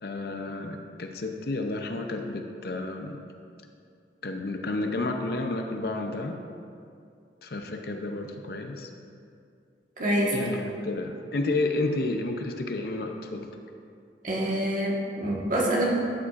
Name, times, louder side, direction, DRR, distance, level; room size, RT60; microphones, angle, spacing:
voice 1, 0.0-3.2 4.2-6.4 7.4-8.9 10.3-13.5, left 2 dB, 55° left, 4 dB, 0.6 m, -31 dB
voice 2, 10.0-10.4 14.2-15.9, right 1 dB, 45° right, -4 dB, 1.5 m, -26 dB
12.0 x 7.3 x 2.5 m, 2.5 s
head